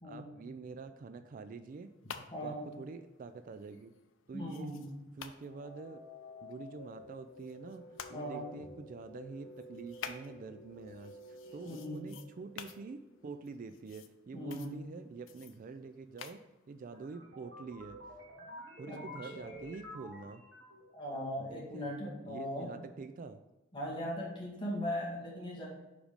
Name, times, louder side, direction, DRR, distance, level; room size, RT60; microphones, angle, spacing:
voice 1, 0.0-1.9 2.2-3.9 4.3-4.7 5.2-6.0 6.4-18.0 18.8-20.4 21.4-21.9 22.2-23.4, right 4 dB, 45° right, 10 dB, 0.3 m, -46 dB
sound 1, 1.7-8.1 8.6-17.1, left 7 dB, 90° left, 0.5 m, -52 dB
voice 2, 2.3-2.7 4.3-4.9 8.1-8.5 11.6-12.1 14.3-14.8 18.9-19.0 19.3-19.5 20.9-22.7 23.7-25.7, equal, 25° left, -5 dB, 2.1 m, -39 dB
sound 2, 5.4-13.4, left 1 dB, 55° left, 0.8 m, -52 dB
sound 3, 16.9-21.0, equal, 70° right, 1.7 m, -50 dB
5.2 x 5.0 x 5.1 m, 1.0 s
head